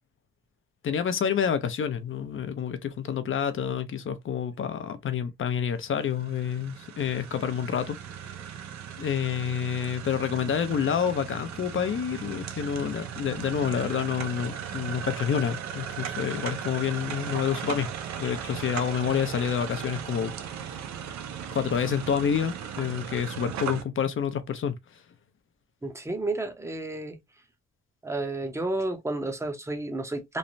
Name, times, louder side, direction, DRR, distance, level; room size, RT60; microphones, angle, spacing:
voice 1, 0.8-8.3 9.0-17.9 18.2-20.3 21.5-25.0, left 8 dB, 45° left, 0.5 m, -28 dB
sound 1, 5.8-23.8, right 8 dB, 65° right, 0.6 m, -37 dB
voice 2, 25.8-27.2 28.0-30.4, right 2 dB, 10° right, 0.7 m, -31 dB
3.1 x 2.1 x 2.6 m
cardioid pair, 90°, 30 cm